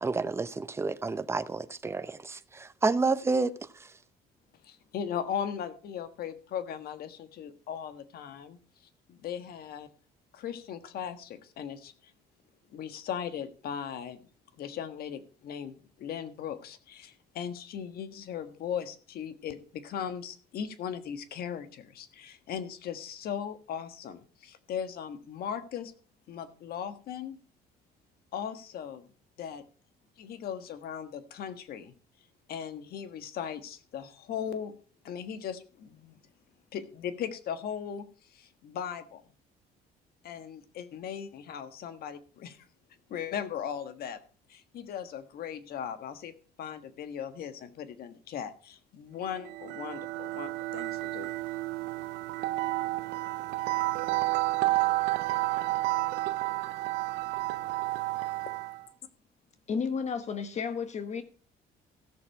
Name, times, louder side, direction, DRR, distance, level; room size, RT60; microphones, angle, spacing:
voice 1, 0.0-2.4 2.8-3.5, right 3 dB, 15° right, 0.7 m, -29 dB
voice 2, 4.6-8.6 9.1-9.9 10.3-11.9 12.7-14.2 14.6-25.9 26.3-27.4 28.3-29.1 29.4-29.6 30.2-31.9 32.5-34.7 35.0-36.2 36.7-38.1 38.3-39.2 40.2-42.6 43.1-44.2 44.5-46.3 46.6-51.3, left 8 dB, 65° left, 1.5 m, -38 dB
sound 1, 49.4-58.8, right 18 dB, 85° right, 0.6 m, -31 dB
voice 3, 59.7-61.2, left 6 dB, 40° left, 1.1 m, -32 dB
15.5 x 6.8 x 4.5 m
cardioid pair, 110°, 17 cm